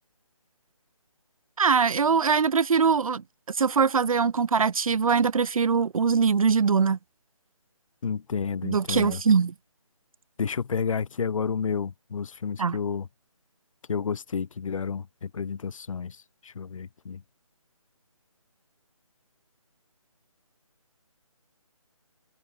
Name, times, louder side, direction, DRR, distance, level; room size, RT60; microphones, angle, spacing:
voice 1, 1.6-3.2 3.5-7.0 8.6-9.5 12.6-12.8, right 5 dB, 70° right, 0.5 m, -22 dB
voice 2, 8.0-9.2 10.4-13.1 13.9-16.2 16.4-17.2, left 6 dB, 65° left, 0.5 m, -30 dB
figure-of-eight pair, 155°, 18 cm